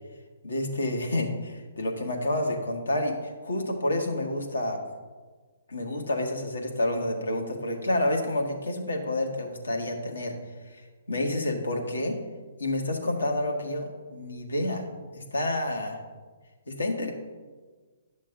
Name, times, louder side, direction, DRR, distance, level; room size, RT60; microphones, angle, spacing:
voice 1, 0.4-4.8 5.7-10.4 11.1-12.2 12.6-14.8 15.1-16.0 16.7-17.1, left 1 dB, 85° left, 2 dB, 1.5 m, -29 dB
10.0 x 6.3 x 3.8 m, 1.4 s
hypercardioid pair, 135°, 0 cm